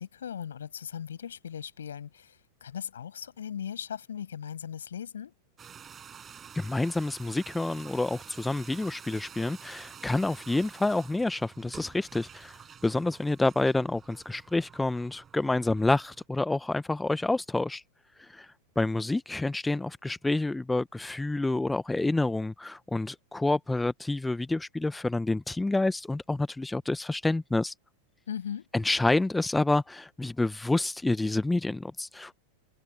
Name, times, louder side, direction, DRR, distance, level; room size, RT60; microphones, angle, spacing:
voice 1, 0.0-5.3 28.3-28.7, left 8 dB, 65° left, 6.8 m, -38 dB
sound 1, 5.6-16.2, right 7 dB, 20° right, 7.8 m, -49 dB
voice 2, 6.5-17.8 18.2-18.5 18.8-27.7 28.7-32.4, left 2 dB, 5° left, 1.1 m, -28 dB
figure-of-eight pair, 90°, 0 cm